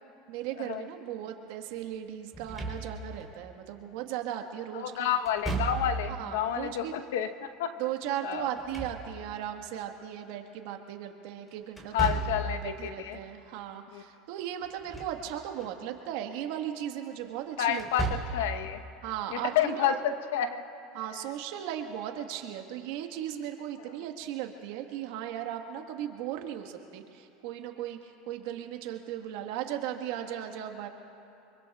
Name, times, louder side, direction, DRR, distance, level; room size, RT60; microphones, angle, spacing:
voice 1, 0.3-5.1 6.1-7.0 7.8-17.8 19.0-19.9 20.9-30.9, right 10 dB, 70° right, 4 dB, 1.5 m, -37 dB
Slam / Thump thud, 2.3-3.2 5.3-6.2 8.4-9.5 11.8-12.6 14.6-15.2 15.6-15.7 17.7-18.5, right 2 dB, ahead, 3.8 m, -34 dB
voice 2, 4.7-7.8 8.2-8.5 11.9-13.2 13.9-14.0 17.6-18.8 19.3-20.6, left 9 dB, 80° left, 8 dB, 1.0 m, -30 dB
25.5 x 23.5 x 2.4 m, 2.8 s
supercardioid pair, 110°, 0 cm